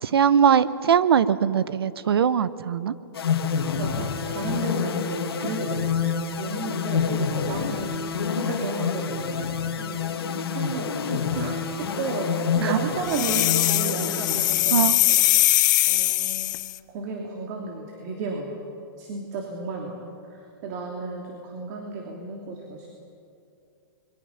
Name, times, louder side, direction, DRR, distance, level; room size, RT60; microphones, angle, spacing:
voice 1, 0.0-2.9 12.6-12.8 14.7-15.0, right 8 dB, 85° right, 15 dB, 1.0 m, -21 dB
sound 1, 3.1-15.0, left 6 dB, 85° left, 1.9 m, -28 dB
voice 2, 3.8-7.9 8.3-10.0 10.5-16.5 16.9-18.6 19.0-22.9, right 3 dB, 45° right, 1 dB, 3.0 m, -33 dB
sound 2, 13.1-16.8, left 15 dB, 50° left, 0.6 m, -21 dB
26.0 x 22.5 x 5.8 m, 2.7 s
hypercardioid pair, 145°, 13 cm